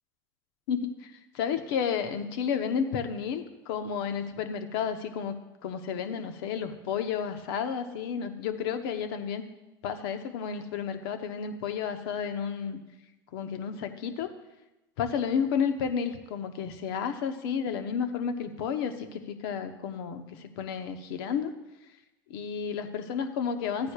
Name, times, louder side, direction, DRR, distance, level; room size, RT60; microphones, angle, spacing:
voice 1, 0.7-1.1 1.3-5.4 5.6-9.4 9.8-12.8 13.3-14.3 15.0-21.5 22.3-23.9, left 7 dB, 70° left, 8 dB, 1.0 m, -31 dB
14.0 x 9.5 x 2.4 m, 1.0 s
hypercardioid pair, 95°, 13 cm